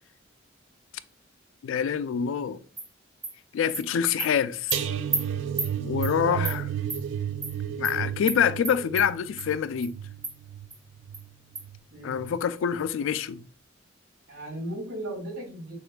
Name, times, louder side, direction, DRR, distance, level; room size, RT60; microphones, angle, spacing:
voice 1, 1.6-2.6 3.5-4.8 5.8-6.6 7.8-10.0 12.0-13.4, left 8 dB, 80° left, 0.3 m, -26 dB
Animal, 2.8-2.9 3.2-3.3 3.7-3.8 4.2-4.3 4.7-4.8 5.1-5.2 5.6-5.7 6.0-6.1 6.4-6.6 6.9-7.0 7.4-7.5 7.8-7.9 8.3-8.4 8.6-9.1 9.4-9.5 9.8-9.9 10.2-10.3 10.7-10.8 11.1-11.2 11.6-11.7, right 3 dB, 15° right, 0.8 m, -30 dB
sound 1, 4.7-11.8 12.1-12.4 12.8-12.9, right 9 dB, 70° right, 0.3 m, -33 dB
voice 2, 6.1-6.6 11.9-12.2 14.3-15.7, right 1 dB, 85° right, 2.1 m, -36 dB
6.6 x 2.4 x 2.2 m
head